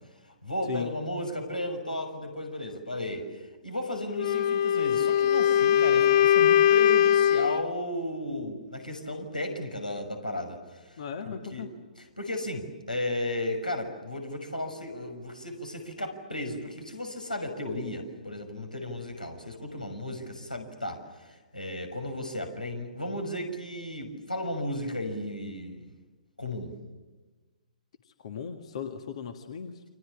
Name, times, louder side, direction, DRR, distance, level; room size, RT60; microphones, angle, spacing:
voice 1, 0.4-11.0 11.2-11.7 12.2-25.8 26.4-26.7, left 1 dB, 90° left, 5 dB, 6.2 m, -34 dB
Wind instrument woodwind instrument, 4.2-7.7, left 10 dB, 35° left, 0.9 m, -21 dB
voice 2, 11.0-11.7 28.0-29.8, left 7 dB, 50° left, 7 dB, 1.8 m, -37 dB
30.0 x 25.5 x 7.4 m, 1.3 s
figure-of-eight pair, 125°, 4 cm